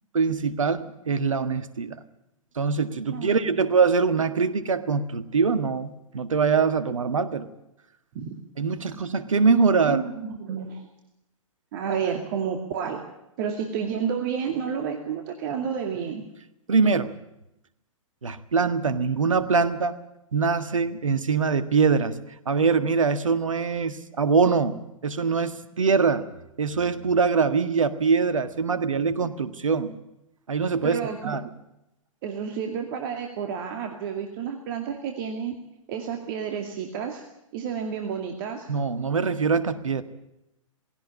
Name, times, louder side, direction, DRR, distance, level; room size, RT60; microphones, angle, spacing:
voice 1, 0.1-2.0 2.5-7.5 8.6-10.0 16.7-17.1 18.2-20.0 20.3-22.2 22.4-26.3 26.6-30.0 30.5-31.4 38.7-40.0, right 5 dB, 70° right, 13 dB, 1.7 m, -23 dB
voice 2, 3.1-3.6 8.1-8.3 9.9-10.9 11.7-13.0 13.4-16.2 30.8-31.4 32.2-35.5 35.9-37.2 37.5-38.7, right 7 dB, 40° right, 4 dB, 2.4 m, -30 dB
19.5 x 17.0 x 8.6 m, 0.87 s
figure-of-eight pair, 115°, 17 cm